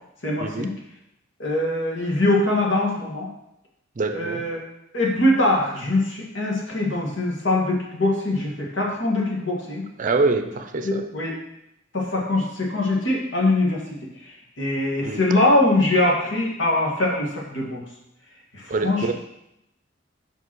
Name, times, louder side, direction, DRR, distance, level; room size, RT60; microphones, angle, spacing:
voice 1, 0.2-0.7 1.4-3.3 4.1-4.6 4.9-9.9 10.8-11.4 11.9-13.8 14.2-17.8 18.5-19.1, left 2 dB, 80° left, -2 dB, 2.0 m, -22 dB
voice 2, 4.0-4.4 10.0-11.0 15.0-15.2 18.7-19.1, right 3 dB, 45° right, 8 dB, 0.5 m, -25 dB
5.3 x 5.2 x 6.2 m, 0.83 s
head